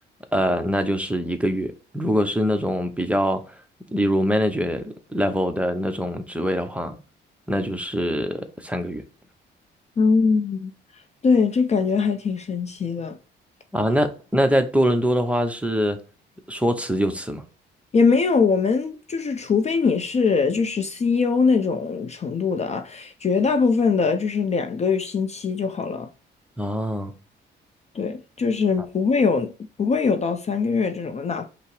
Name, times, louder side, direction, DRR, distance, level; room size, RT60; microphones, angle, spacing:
voice 1, 0.3-3.4 3.9-7.0 7.5-9.0 13.7-16.0 16.5-17.4 26.6-27.1, equal, 5° right, 0.6 m, -23 dB
voice 2, 10.0-13.2 17.9-26.1 27.9-29.5 29.8-31.5, left 5 dB, 35° left, 0.5 m, -22 dB
5.5 x 2.0 x 4.6 m
cardioid pair, 90°, 20 cm